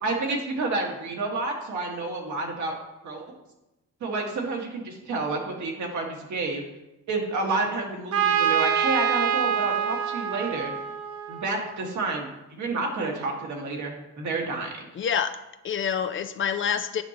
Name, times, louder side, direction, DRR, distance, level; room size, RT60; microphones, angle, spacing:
voice 1, 0.0-2.7 3.0-3.3 4.0-6.6 7.1-10.7 11.3-14.9, right 3 dB, 70° right, 0 dB, 1.7 m, -29 dB
Trumpet, 8.1-11.8, right 8 dB, 50° right, 0.7 m, -26 dB
voice 2, 14.9-17.0, left 8 dB, 40° left, 11 dB, 0.4 m, -27 dB
9.6 x 5.4 x 2.9 m, 0.96 s
cardioid pair, 90°, 30 cm